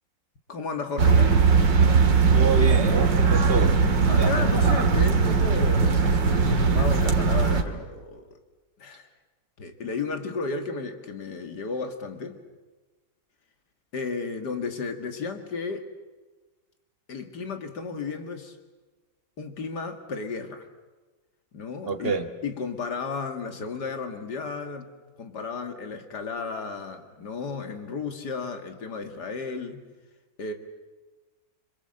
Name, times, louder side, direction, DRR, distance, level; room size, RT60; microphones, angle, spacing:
voice 1, 0.5-1.4 4.1-8.4 8.8-9.1 9.6-12.4 13.9-15.9 17.1-18.6 19.4-20.7 21.5-24.9 25.2-29.8 30.4-30.5, left 4 dB, 65° left, 6 dB, 2.7 m, -33 dB
sound 1, 1.0-7.6, right 5 dB, 80° right, 2.6 m, -20 dB
voice 2, 2.3-4.3 21.9-22.3, right 4 dB, 35° right, 8 dB, 1.5 m, -28 dB
26.5 x 26.0 x 7.8 m, 1.2 s
omnidirectional pair, 1.9 m